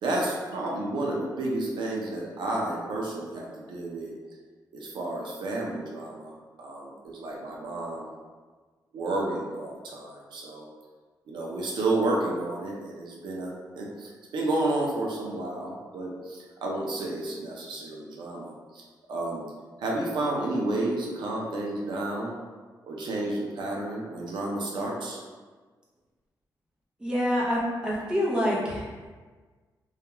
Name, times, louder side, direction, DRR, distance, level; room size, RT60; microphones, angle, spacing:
voice 1, 0.0-4.1 4.7-8.1 8.9-10.7 11.3-18.8 19.1-19.4 19.8-22.3 22.8-25.2, right 2 dB, 85° right, -3 dB, 0.5 m, -31 dB
voice 2, 27.0-28.9, equal, 10° right, -6 dB, 0.6 m, -26 dB
2.3 x 2.2 x 2.9 m, 1.4 s
wide cardioid pair, 150°, 8 cm